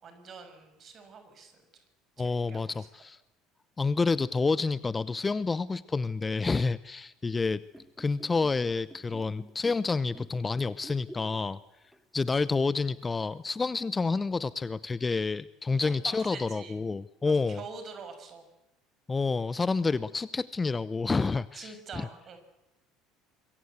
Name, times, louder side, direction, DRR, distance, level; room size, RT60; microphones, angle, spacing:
voice 1, 0.0-1.6 2.2-2.7 15.7-16.8 17.2-18.4 21.6-22.4, right 5 dB, 40° right, 8 dB, 6.3 m, -45 dB
voice 2, 2.2-3.2 3.8-7.6 8.0-11.6 12.1-17.6 19.1-22.1, left 4 dB, 20° left, 18 dB, 0.8 m, -29 dB
sound 1, 7.6-11.6 11.9-12.1 13.0-13.1, right 1 dB, 5° right, 2.8 m, -49 dB
25.5 x 22.5 x 8.2 m, 0.97 s
figure-of-eight pair, 65°, 0 cm